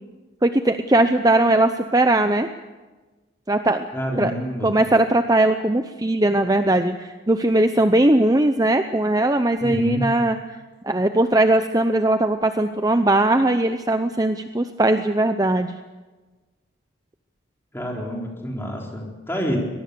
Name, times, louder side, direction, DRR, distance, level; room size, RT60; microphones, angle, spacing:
voice 1, 0.4-2.5 3.5-3.9 4.2-4.3 4.6-10.4 10.8-15.7, right 1 dB, 20° right, 8 dB, 0.6 m, -19 dB
voice 2, 3.9-4.7 9.6-10.0 17.7-19.6, equal, 10° left, -1 dB, 4.1 m, -28 dB
24.0 x 19.0 x 6.9 m, 1.2 s
head